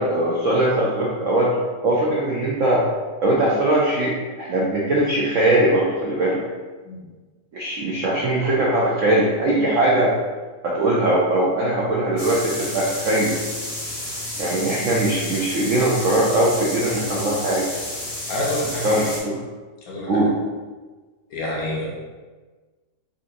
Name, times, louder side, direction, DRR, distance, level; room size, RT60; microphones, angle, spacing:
voice 1, 0.0-1.5 1.8-2.8 3.2-6.4 7.5-10.1 10.6-13.4 14.4-17.6 18.8-19.4 20.1-20.3, right 1 dB, 75° right, -5 dB, 0.7 m, -20 dB
sound 1, 12.2-19.2, left 1 dB, 45° left, 0.4 m, -31 dB
voice 2, 18.3-19.0 19.9-20.1 21.3-22.0, left 1 dB, 65° left, -3 dB, 1.0 m, -27 dB
3.9 x 2.4 x 2.6 m, 1.3 s
omnidirectional pair, 1.9 m